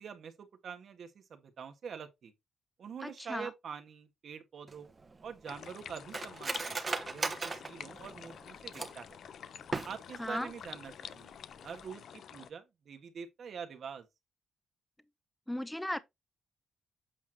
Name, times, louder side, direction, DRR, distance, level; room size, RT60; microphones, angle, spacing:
voice 1, 0.0-2.3 2.8-4.9 5.2-9.2 9.8-11.4 11.6-14.1, right 7 dB, 65° right, 1.5 m, -45 dB
voice 2, 3.0-3.5 10.2-10.5 15.5-16.0, left 1 dB, 5° left, 0.9 m, -36 dB
Cutlery silverware, 4.7-9.1 9.6-10.3 10.6-10.7 11.0-11.4 11.7-11.9, right 3 dB, 40° right, 1.2 m, -38 dB
sound 1, 5.5-12.5, left 8 dB, 70° left, 0.5 m, -48 dB
8.4 x 6.0 x 2.8 m
supercardioid pair, 60°, 0 cm